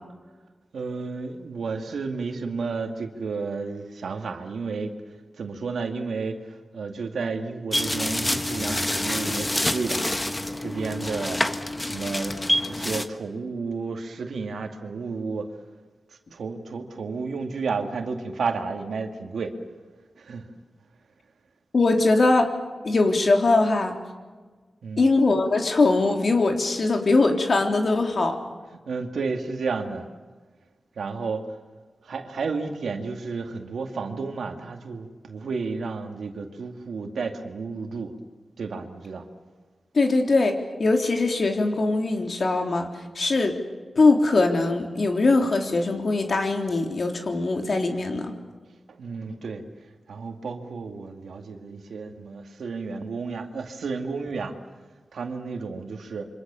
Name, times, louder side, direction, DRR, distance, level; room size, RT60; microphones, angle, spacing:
voice 1, 0.7-4.9 5.4-10.0 10.6-11.4 11.9-12.3 12.7-15.5 16.3-19.5 20.2-20.5 24.8-25.1 28.9-30.1 31.0-31.4 32.0-38.1 38.6-39.3 48.9-49.6 50.1-54.5 55.1-56.3, right 4 dB, 90° right, 5 dB, 2.3 m, -32 dB
sound 1, 7.7-13.1, left 1 dB, 15° left, 1.5 m, -27 dB
voice 2, 21.7-22.5 22.8-24.0 25.0-28.4 39.9-43.6 44.0-48.3, left 3 dB, 60° left, 4 dB, 3.5 m, -21 dB
27.0 x 25.0 x 7.1 m, 1.4 s
cardioid pair, 65°, 0 cm